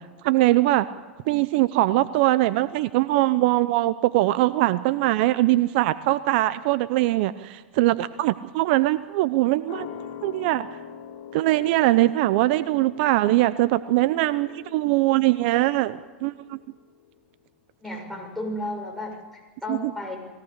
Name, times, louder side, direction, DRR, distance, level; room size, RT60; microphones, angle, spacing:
voice 1, 0.2-0.9 1.3-9.9 10.2-10.7 11.3-16.6 19.7-19.8, right 17 dB, 60° right, 14 dB, 0.8 m, -22 dB
sound 1, 9.7-16.7 17.0-17.1, left 8 dB, 55° left, 4.0 m, -43 dB
voice 2, 17.8-20.2, left 1 dB, ahead, -1 dB, 6.7 m, -33 dB
21.5 x 17.5 x 8.3 m, 1.4 s
hypercardioid pair, 110°, 6 cm